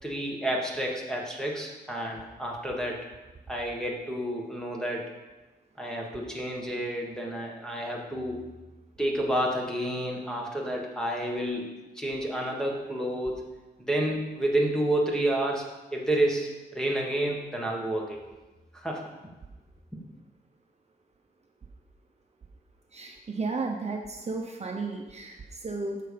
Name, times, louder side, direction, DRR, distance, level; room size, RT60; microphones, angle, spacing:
voice 1, 0.0-3.0 3.5-5.0 5.8-8.4 9.0-11.7 11.9-13.5 13.8-18.2 18.7-19.1 19.9-20.0, right 1 dB, 5° left, -1 dB, 1.5 m, -30 dB
voice 2, 22.9-26.0, right 3 dB, 40° right, 2 dB, 0.8 m, -33 dB
9.8 x 6.7 x 5.2 m, 1.2 s
wide cardioid pair, 145°, 17 cm